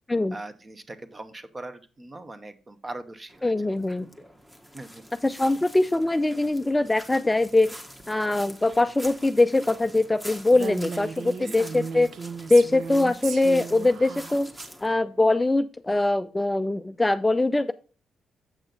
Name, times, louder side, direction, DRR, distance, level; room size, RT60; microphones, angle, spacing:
voice 1, 0.3-4.0 4.7-5.0 11.4-11.6, right 2 dB, 25° right, 10 dB, 1.0 m, -41 dB
sound 1, 3.3-14.9, equal, 5° right, 1.2 m, -46 dB
voice 2, 3.4-4.1 5.2-7.8 8.1-12.1 12.5-14.5 14.8-17.7, left 2 dB, 15° left, 10 dB, 0.4 m, -22 dB
Female speech woman speaking, 10.5-14.7, right 5 dB, 70° right, 0.6 m, -36 dB
7.8 x 6.1 x 3.9 m, 0.36 s
cardioid pair, 90°, 0 cm